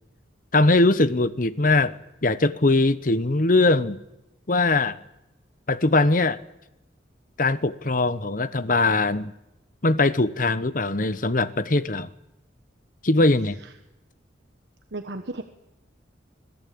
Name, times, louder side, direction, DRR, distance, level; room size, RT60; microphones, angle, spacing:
voice 1, 0.5-2.0 2.2-4.0 4.5-5.0 5.7-6.4 7.4-9.3 9.8-12.1 13.0-13.6, left 2 dB, 45° left, 15 dB, 1.0 m, -21 dB
voice 2, 14.9-15.4, right 2 dB, 65° right, 7 dB, 1.3 m, -34 dB
25.5 x 17.5 x 8.6 m, 0.92 s
head